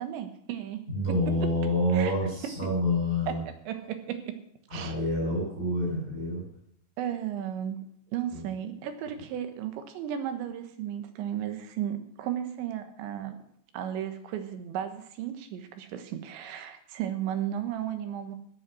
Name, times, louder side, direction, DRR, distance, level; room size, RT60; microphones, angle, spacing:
voice 1, 0.0-1.2 1.9-2.1 2.4-2.5 3.3-3.4 3.7-4.4 4.7-5.0 7.0-7.8 8.1-13.4 13.7-18.4, right 10 dB, 90° right, 8 dB, 3.6 m, -34 dB
voice 2, 0.9-3.4 4.7-6.5 8.3-8.4, left 1 dB, 15° right, -5 dB, 6.9 m, -27 dB
14.0 x 9.6 x 6.1 m, 0.76 s
omnidirectional pair, 5.1 m